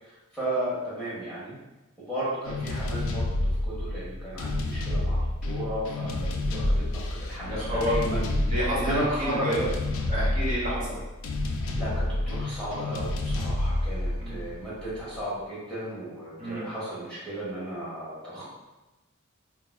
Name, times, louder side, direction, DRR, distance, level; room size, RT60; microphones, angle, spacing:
voice 1, 0.3-1.6 2.1-3.2 3.6-8.3 8.7-9.7 11.7-18.4, right 1 dB, 5° left, -10 dB, 0.9 m, -34 dB
sound 1, 2.4-15.2, left 1 dB, 75° left, 0.4 m, -29 dB
voice 2, 7.5-8.0 8.4-9.6 10.1-11.0 14.2-14.4 16.4-16.7, equal, 35° right, -7 dB, 1.2 m, -30 dB
4.5 x 2.3 x 2.2 m, 1.1 s
head